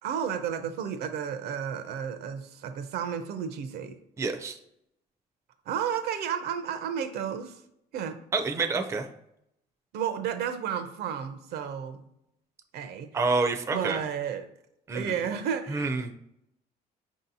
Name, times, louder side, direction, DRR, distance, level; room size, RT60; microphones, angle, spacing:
voice 1, 0.0-4.0 5.7-7.6 7.9-8.2 9.9-12.0 12.7-13.1 13.7-14.5 14.9-16.1, right 8 dB, 70° right, 9 dB, 0.5 m, -32 dB
voice 2, 4.2-4.6 8.3-9.1 13.1-14.0 14.9-15.1 15.7-16.1, right 3 dB, 15° right, 5 dB, 0.4 m, -28 dB
5.1 x 2.7 x 2.6 m, 0.78 s
cardioid pair, 110°, 17 cm